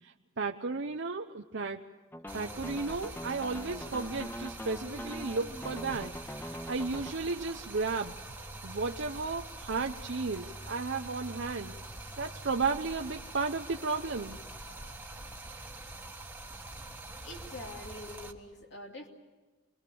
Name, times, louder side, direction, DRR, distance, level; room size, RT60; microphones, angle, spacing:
voice 1, 0.0-1.9 2.3-6.1 6.4-8.2 8.6-11.8 12.2-14.4, right 4 dB, 60° right, 4 dB, 0.8 m, -34 dB
sound 1, 2.1-7.1, left 1 dB, 10° left, 0.7 m, -43 dB
Stream, 2.3-18.3, right 2 dB, 10° right, 1.6 m, -45 dB
voice 2, 17.2-19.1, left 1 dB, 60° left, 1 dB, 2.7 m, -45 dB
28.5 x 21.5 x 7.0 m, 1.3 s
head